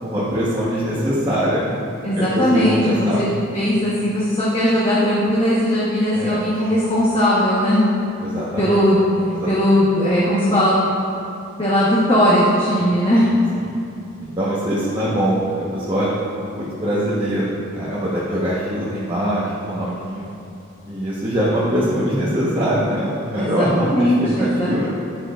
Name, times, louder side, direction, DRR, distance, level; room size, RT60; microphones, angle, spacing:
voice 1, 0.0-1.7 2.2-3.2 6.1-6.4 8.2-8.8 9.4-9.8 12.8-13.3 14.2-16.1 16.6-20.2 20.9-24.9, equal, 25° right, -8 dB, 1.1 m, -23 dB
voice 2, 2.0-7.9 8.6-9.1 9.5-10.8 11.6-13.3 23.3-24.9, equal, 25° left, -8 dB, 1.1 m, -18 dB
11.5 x 9.2 x 2.5 m, 2.6 s
head